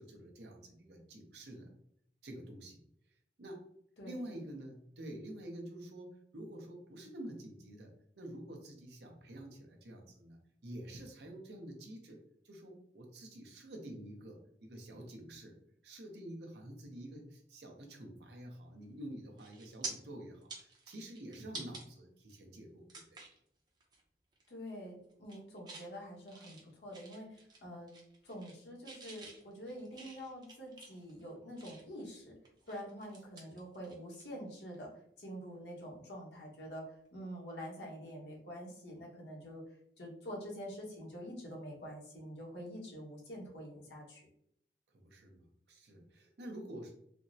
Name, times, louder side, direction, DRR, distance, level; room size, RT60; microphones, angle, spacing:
voice 1, 0.0-1.7 2.2-2.8 3.4-3.6 4.0-10.4 10.6-12.2 12.4-15.6 15.8-23.2 33.4-33.6 44.9-47.0, right 1 dB, 75° right, 2 dB, 0.7 m, -48 dB
sound 1, 18.8-19.0 19.4-19.9 20.3-21.8 22.3-22.4 22.9-23.4 23.8-24.0 24.3-24.8 25.1-25.9 26.3-27.6 27.9-28.6 28.8-32.0 32.4-34.3 34.6-34.8 36.6-36.8, right 3 dB, 25° right, 0.5 m, -49 dB
voice 2, 24.5-27.9 28.2-32.4 32.7-34.9 35.2-39.6 40.0-44.3, equal, 80° left, -2 dB, 1.0 m, -46 dB
3.4 x 2.0 x 2.6 m, 0.69 s
head